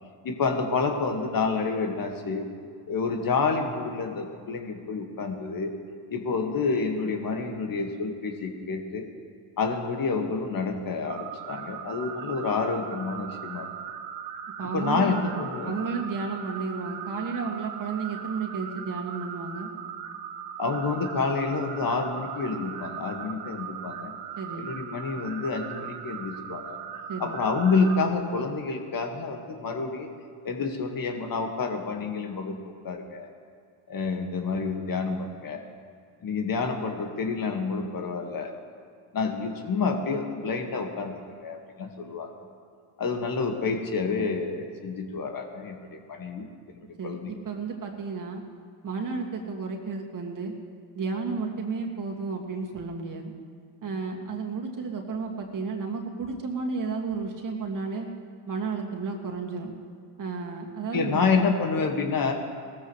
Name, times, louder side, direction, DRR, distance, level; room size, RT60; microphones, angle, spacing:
voice 1, 0.2-2.4 2.9-5.7 6.1-9.1 9.6-13.7 14.7-15.8 20.6-24.1 24.6-26.8 27.2-30.1 30.4-32.6 32.8-33.3 33.9-35.6 36.2-38.5 39.1-41.1 41.4-42.3 43.0-47.3 60.9-62.3, left 4 dB, 45° left, 3 dB, 1.9 m, -28 dB
sound 1, 11.1-28.1, right 8 dB, 80° right, 1.2 m, -39 dB
voice 2, 14.6-15.2 15.6-19.7 24.4-24.7 27.1-27.4 47.0-48.4 48.8-50.5 50.9-53.3 53.8-58.1 58.5-59.7 60.2-61.2, right 4 dB, 40° right, 1 dB, 2.3 m, -32 dB
19.0 x 14.0 x 3.3 m, 2.1 s
hypercardioid pair, 60°, 49 cm